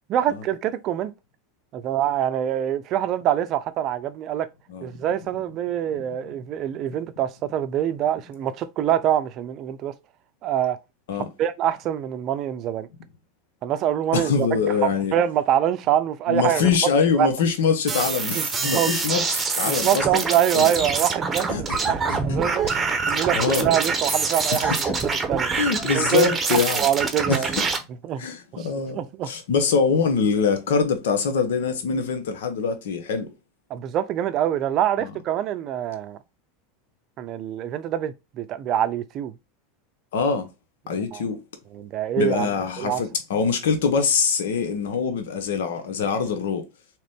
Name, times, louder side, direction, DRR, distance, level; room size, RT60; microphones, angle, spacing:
voice 1, 0.1-1.1 1.7-4.5 4.8-9.9 10.4-10.8 11.4-12.9 13.6-16.8 17.2-17.3 18.3-18.9 19.6-22.7 23.1-24.9 25.3-25.5 25.9-27.6 28.0-28.3 28.5-28.7 28.9-29.3 33.7-36.2 37.2-39.3 40.9-41.2 41.7-42.5 42.8-43.0, right 10 dB, 50° right, 0.5 m, -25 dB
voice 2, 14.1-15.1 16.3-20.2 20.5-20.7 21.5-21.8 22.1-22.2 22.7-22.8 23.3-23.7 24.5-24.8 25.5-26.9 27.3-27.6 28.2-29.0 29.3-33.3 40.1-40.5 40.9-41.4 42.2-46.6, left 5 dB, 80° left, 0.9 m, -24 dB
sound 1, 17.9-27.8, right 4 dB, 20° right, 1.0 m, -25 dB
3.8 x 3.0 x 3.6 m
hypercardioid pair, 95°, 0 cm